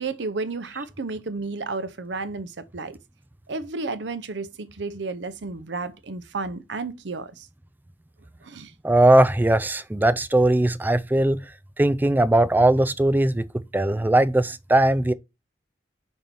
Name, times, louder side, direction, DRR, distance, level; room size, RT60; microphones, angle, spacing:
voice 1, 0.0-3.0 3.5-7.5 8.4-8.7, right 3 dB, 70° right, 0.7 m, -32 dB
voice 2, 8.8-11.5 11.8-15.1, right 1 dB, 10° right, 0.3 m, -19 dB
5.4 x 4.4 x 5.3 m
head